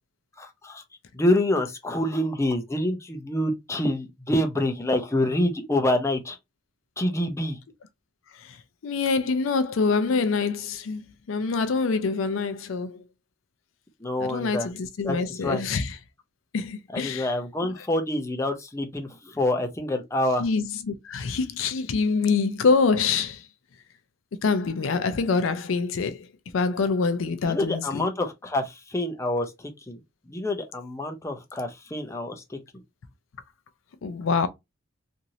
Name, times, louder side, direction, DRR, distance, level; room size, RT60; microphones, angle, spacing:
voice 1, 0.4-0.8 1.1-6.4 7.0-7.6 14.0-14.7 15.0-15.6 16.9-20.5 27.4-30.0 30.3-32.6, left 1 dB, 15° left, 0.6 m, -27 dB
voice 2, 8.8-11.0 11.3-13.0 14.3-15.9 16.5-17.3 20.4-23.4 24.4-26.2 26.5-28.0 34.0-34.5, left 4 dB, 85° left, 0.5 m, -25 dB
3.0 x 2.6 x 2.6 m
head